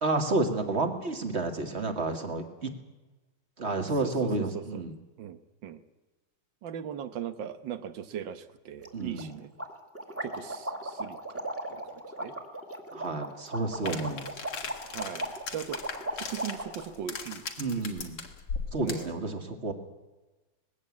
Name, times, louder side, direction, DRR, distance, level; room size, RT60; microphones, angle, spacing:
voice 1, 0.0-2.7 3.6-4.9 8.9-9.3 12.9-14.3 17.6-18.2 18.7-19.7, right 2 dB, 30° right, 6 dB, 2.2 m, -30 dB
voice 2, 4.0-4.8 5.2-5.8 6.6-9.5 10.2-12.3 13.9-14.1 14.8-15.8 16.1-17.4 18.8-19.2, right 9 dB, 60° right, 12 dB, 1.7 m, -39 dB
sound 1, 8.8-8.9 9.2-9.3 9.6-16.8, right 1 dB, 5° right, 2.0 m, -37 dB
sound 2, 13.9-19.1, left 5 dB, 85° left, 2.8 m, -38 dB
20.5 x 16.0 x 8.6 m, 1.2 s
omnidirectional pair, 2.4 m